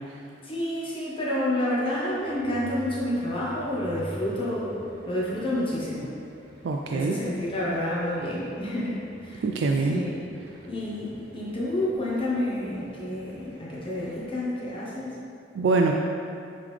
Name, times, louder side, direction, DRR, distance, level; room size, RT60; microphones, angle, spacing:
voice 1, 0.4-6.1 6.9-9.4 9.9-10.2 10.7-15.2, left 1 dB, 30° left, -7 dB, 1.1 m, -29 dB
sound 1, 2.0-14.3, equal, 60° right, 1.0 m, -47 dB
voice 2, 6.6-7.2 9.4-10.0 15.5-15.9, right 3 dB, 75° right, 1 dB, 0.4 m, -24 dB
8.1 x 3.7 x 3.3 m, 2.6 s
head